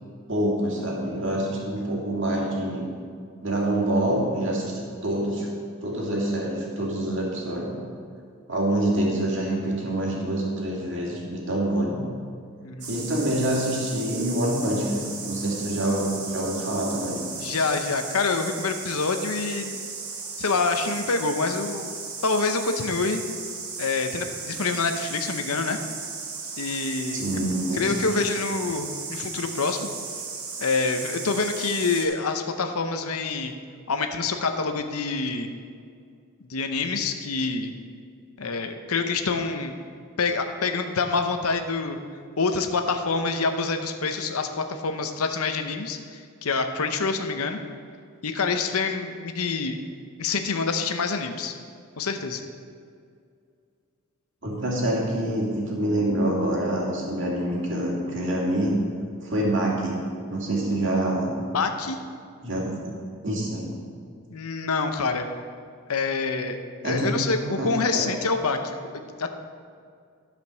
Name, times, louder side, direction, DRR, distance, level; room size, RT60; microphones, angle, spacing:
voice 1, 0.3-2.9 3.4-5.5 5.8-7.8 8.5-12.0 12.9-17.2 27.1-28.1 54.4-58.7 59.2-60.0 60.3-61.4 62.4-62.9 63.2-63.7 66.8-68.0, right 1 dB, 55° right, -3 dB, 2.3 m, -26 dB
voice 2, 12.6-13.0 17.4-19.8 20.4-23.2 23.8-25.8 26.6-27.2 27.7-29.9 30.6-33.5 33.9-35.5 36.4-37.7 38.4-39.7 40.2-42.0 42.4-47.6 48.2-49.8 50.2-51.5 52.0-52.4 61.5-62.0 64.3-65.3 65.9-66.6 66.8-69.3, left 4 dB, 80° left, 6 dB, 0.8 m, -26 dB
sound 1, 12.8-32.0, right 5 dB, 85° right, 1.7 m, -36 dB
12.5 x 5.2 x 6.4 m, 2.2 s
head